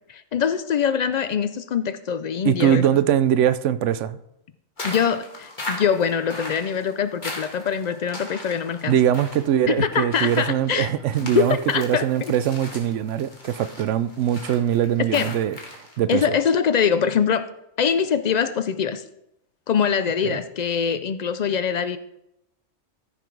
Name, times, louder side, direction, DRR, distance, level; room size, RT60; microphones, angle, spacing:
voice 1, 0.1-2.9 4.8-8.9 9.7-10.9 11.2-12.3 15.1-15.4 16.1-17.5 17.8-19.0 19.7-22.0, left 7 dB, 70° left, 13 dB, 0.4 m, -23 dB
voice 2, 2.4-4.2 8.9-16.4 20.2-20.4, right 10 dB, 80° right, 15 dB, 0.9 m, -22 dB
sound 1, 4.8-16.0, left 1 dB, 40° left, 1.8 m, -38 dB
14.0 x 5.8 x 4.6 m, 0.85 s
omnidirectional pair, 1.2 m